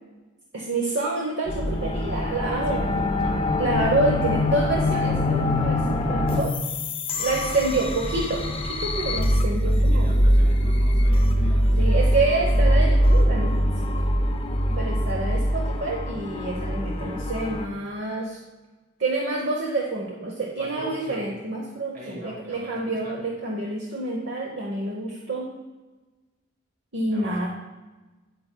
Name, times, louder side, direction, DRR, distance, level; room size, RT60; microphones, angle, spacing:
voice 1, 0.5-2.9 3.6-6.5 7.2-10.1 11.8-13.7 14.7-18.4 19.0-25.5 26.9-27.5, right 2 dB, 55° right, -1 dB, 0.9 m, -27 dB
sound 1, 1.5-17.7, equal, 25° left, 0.5 m, -22 dB
voice 2, 2.5-3.4 7.8-8.0 9.8-11.9 14.6-15.0 20.6-21.3 21.9-23.2 27.0-27.3, right 1 dB, 40° right, -3 dB, 2.5 m, -41 dB
8.8 x 8.5 x 2.2 m, 1.2 s
head